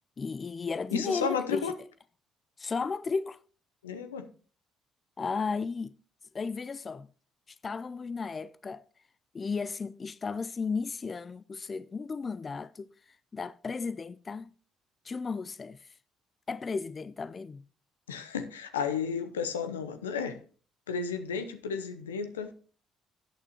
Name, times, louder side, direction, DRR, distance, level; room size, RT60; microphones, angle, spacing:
voice 1, 0.2-1.7 2.6-3.4 5.2-6.0 6.3-7.1 7.5-8.8 9.3-14.5 15.0-16.0 16.5-17.6, left 4 dB, 40° left, 0.4 m, -34 dB
voice 2, 0.9-1.7 3.8-4.3 18.1-20.4 20.9-22.5, left 6 dB, 85° left, 0.7 m, -33 dB
13.5 x 8.9 x 2.9 m
hypercardioid pair, 45°, 0 cm